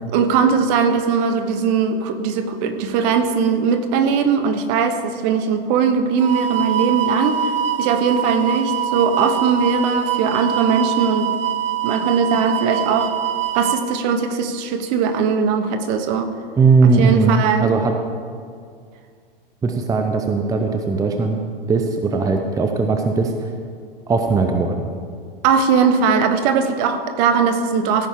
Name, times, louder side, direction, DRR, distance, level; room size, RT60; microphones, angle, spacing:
voice 1, 0.1-7.5 7.8-11.3 11.8-13.1 13.5-16.3 16.8-17.7 25.4-28.1, right 6 dB, 45° right, 8 dB, 1.2 m, -19 dB
sound 1, 6.2-13.8, right 10 dB, 75° right, 0.8 m, -24 dB
voice 2, 16.6-18.0 19.6-21.4 21.7-23.5 24.1-24.9, right 4 dB, 10° right, 4 dB, 0.7 m, -18 dB
15.5 x 9.1 x 3.7 m, 2.1 s
hypercardioid pair, 110°, 29 cm